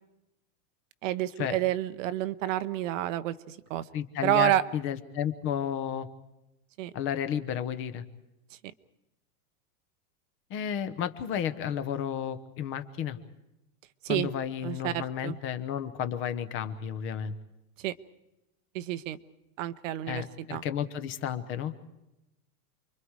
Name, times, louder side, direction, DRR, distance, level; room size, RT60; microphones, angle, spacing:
voice 1, 1.0-3.8 4.2-4.6 6.8-6.9 14.0-14.3 14.6-15.4 17.8-17.9 18.7-19.2 19.6-20.2 20.5-20.6, right 14 dB, 55° right, 13 dB, 1.0 m, -29 dB
voice 2, 3.9-6.1 6.9-8.0 10.5-13.2 14.1-17.3 20.1-21.7, left 9 dB, 25° left, 11 dB, 1.0 m, -32 dB
29.0 x 23.5 x 4.8 m, 0.92 s
supercardioid pair, 165°, 45 cm